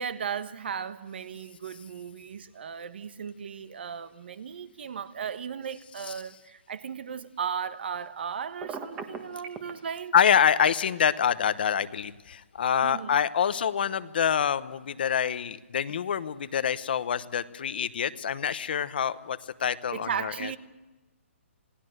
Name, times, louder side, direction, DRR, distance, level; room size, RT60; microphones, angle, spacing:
voice 1, 0.0-10.1 12.8-13.2 19.9-20.6, right 7 dB, 50° right, 1.3 m, -36 dB
Telephone, 8.6-9.7, right 5 dB, 15° right, 1.5 m, -37 dB
voice 2, 10.1-20.5, left 8 dB, 45° left, 1.0 m, -26 dB
27.5 x 18.5 x 7.9 m
hypercardioid pair, 170°, 7 cm